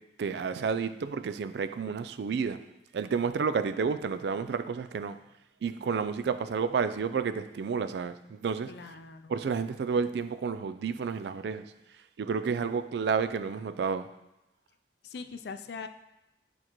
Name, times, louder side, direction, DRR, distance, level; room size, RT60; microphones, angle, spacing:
voice 1, 0.2-2.6 2.9-5.2 5.6-8.7 9.3-11.7 12.2-14.1, right 5 dB, 70° right, 11 dB, 0.3 m, -30 dB
voice 2, 8.7-9.4 15.0-15.9, left 4 dB, 65° left, 9 dB, 0.4 m, -41 dB
8.7 x 4.5 x 3.0 m, 0.96 s
head